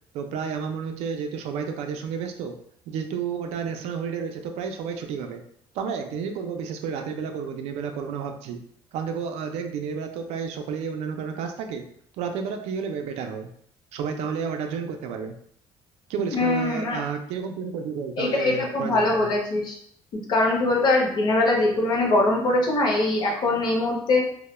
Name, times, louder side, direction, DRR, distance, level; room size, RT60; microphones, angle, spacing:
voice 1, 0.1-2.6 2.9-5.4 5.7-8.6 8.9-11.8 12.2-13.5 13.9-15.4 16.1-19.3, right 6 dB, 75° right, 5 dB, 0.4 m, -31 dB
voice 2, 16.3-17.0 18.2-19.8 20.1-24.3, left 2 dB, 40° left, 0 dB, 0.6 m, -22 dB
2.2 x 2.0 x 3.0 m, 0.66 s
cardioid pair, 165°, 11 cm